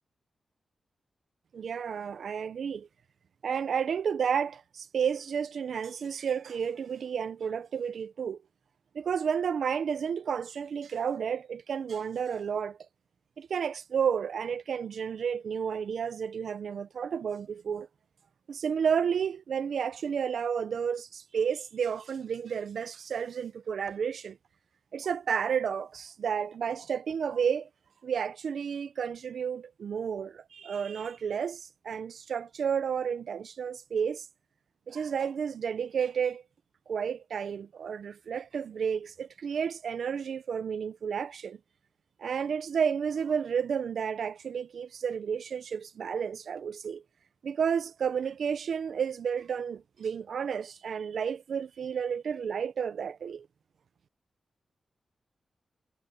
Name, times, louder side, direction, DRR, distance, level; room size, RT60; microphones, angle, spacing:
voice 1, 1.5-2.9 3.4-8.4 8.9-12.8 13.4-17.9 18.5-24.4 24.9-27.7 28.0-34.3 34.9-36.4 36.9-41.6 42.2-47.0 47.4-53.5, right 7 dB, 80° right, 0.8 m, -31 dB
cardioid pair, 70°, 0 cm